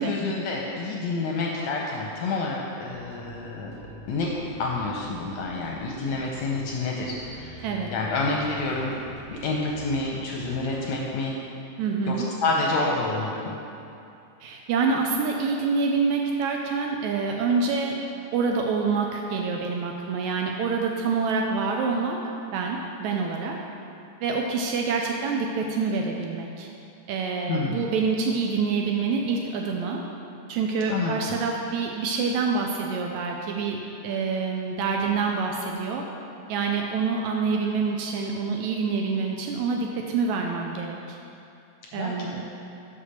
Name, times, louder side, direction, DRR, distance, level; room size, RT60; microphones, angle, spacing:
voice 1, 0.0-3.7 4.1-8.9 9.3-11.4 12.1-13.6 27.5-27.8 30.9-31.1 41.9-42.4, left 3 dB, 75° left, -2 dB, 1.6 m, -28 dB
sound 1, 2.8-11.0, right 1 dB, 65° right, 1.9 m, -44 dB
voice 2, 11.8-12.3 14.4-17.9 18.3-22.2 22.5-23.6 24.2-26.7 27.1-30.0 30.5-36.1 36.5-41.2 41.9-42.4, right 4 dB, 80° right, 1 dB, 1.8 m, -26 dB
6.4 x 5.6 x 6.4 m, 2.7 s
omnidirectional pair, 3.7 m